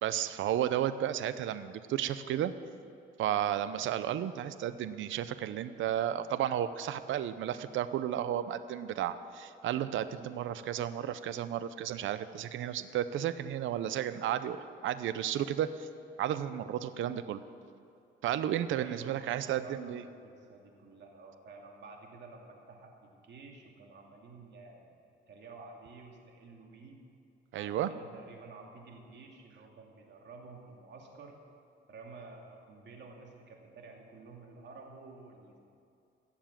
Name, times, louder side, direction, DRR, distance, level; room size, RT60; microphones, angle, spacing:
voice 1, 0.0-2.5 3.2-15.9 16.2-17.4 18.2-20.0 27.5-27.9, right 11 dB, 80° right, 13 dB, 0.7 m, -33 dB
voice 2, 18.8-19.3 19.6-25.0 25.3-27.0 27.5-31.3 31.9-35.6, right 3 dB, 60° right, 1 dB, 2.5 m, -51 dB
16.5 x 7.3 x 7.5 m, 2.6 s
cardioid pair, 90°, 20 cm